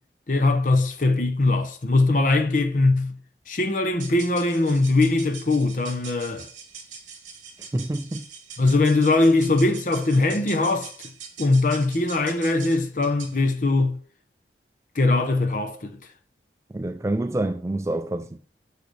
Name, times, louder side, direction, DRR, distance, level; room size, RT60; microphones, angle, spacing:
voice 1, 0.3-3.1 3.5-6.5 8.6-10.9 11.4-14.0 14.9-15.9, left 2 dB, 45° left, 0.9 m, -21 dB
sound 1, 4.0-13.4, right 6 dB, 45° right, 1.5 m, -43 dB
voice 2, 7.7-8.2 16.7-18.4, right 1 dB, 15° right, 0.3 m, -27 dB
6.7 x 6.2 x 3.3 m
head